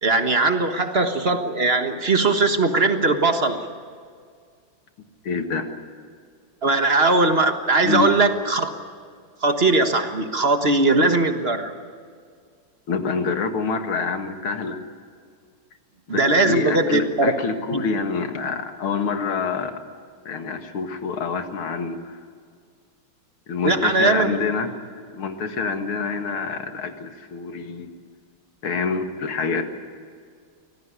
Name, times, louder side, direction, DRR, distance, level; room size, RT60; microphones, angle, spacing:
voice 1, 0.0-3.6 6.6-8.7 9.4-11.7 16.1-17.3 17.7-17.8 23.6-24.3, right 3 dB, 35° right, 6 dB, 1.4 m, -20 dB
voice 2, 5.2-5.7 7.8-8.1 12.9-14.8 16.1-19.7 20.3-22.2 23.5-24.7 25.1-27.9 28.6-29.6, left 5 dB, 85° left, 6 dB, 2.7 m, -26 dB
25.0 x 18.0 x 9.9 m, 2.1 s
omnidirectional pair, 2.3 m